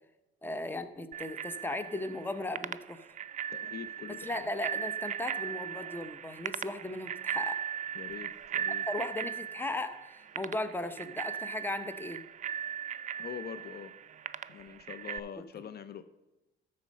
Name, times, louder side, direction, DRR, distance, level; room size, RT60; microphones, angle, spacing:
voice 1, 0.4-3.0 4.2-7.6 8.9-12.2, left 2 dB, 10° left, 11 dB, 0.7 m, -37 dB
Bicycle bell, 1.1-15.2, right 9 dB, 40° right, 0.4 m, -38 dB
voice 2, 3.5-4.5 7.9-8.9 13.2-13.9 14.5-16.0, left 8 dB, 55° left, 12 dB, 0.5 m, -44 dB
13.0 x 4.3 x 6.4 m, 1.0 s
cardioid pair, 90°, 20 cm